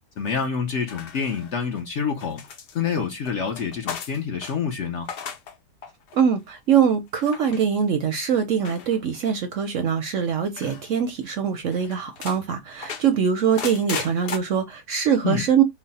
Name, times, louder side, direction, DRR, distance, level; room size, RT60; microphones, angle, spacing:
voice 1, 0.2-2.4 2.7-5.1 15.2-15.4, left 6 dB, 55° left, 0.8 m, -27 dB
sound 1, 0.9-1.8 2.2-4.6 4.9-5.5 5.8-6.2 7.1-7.6 8.6-9.4 10.5-10.9 11.3-11.4 11.7-12.4 12.8-14.4, left 6 dB, 80° left, 0.5 m, -36 dB
voice 2, 6.1-15.6, right 7 dB, 65° right, 0.8 m, -23 dB
4.0 x 2.1 x 4.0 m
omnidirectional pair, 1.7 m